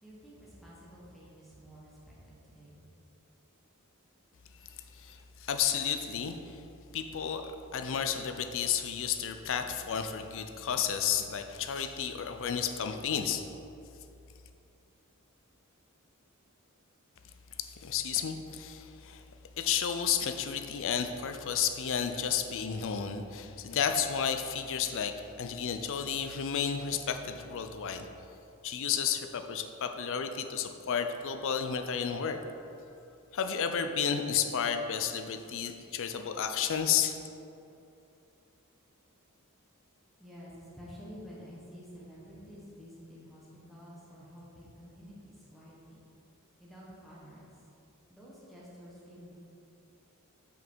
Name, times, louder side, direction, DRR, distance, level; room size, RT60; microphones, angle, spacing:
voice 1, 0.0-2.8 40.2-46.0 46.6-47.7 48.1-49.3, equal, ahead, -7 dB, 1.2 m, -50 dB
voice 2, 4.9-6.6 6.9-7.4 7.7-13.4 17.6-19.2 19.6-28.1 28.6-32.4 33.3-37.2, left 8 dB, 65° left, 7 dB, 0.5 m, -32 dB
6.1 x 5.3 x 4.6 m, 2.7 s
head